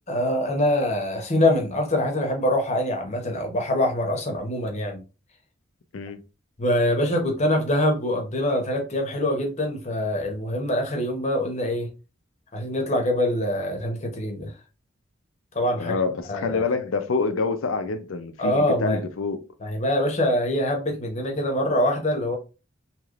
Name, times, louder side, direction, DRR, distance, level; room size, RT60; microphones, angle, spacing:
voice 1, 0.1-5.0 6.6-11.9 12.5-14.5 15.5-16.0 16.3-16.6 18.4-19.0 19.6-22.4, left 1 dB, 35° left, 0.9 m, -24 dB
voice 2, 15.8-19.4, left 4 dB, 80° left, 0.5 m, -27 dB
3.2 x 2.9 x 2.4 m
head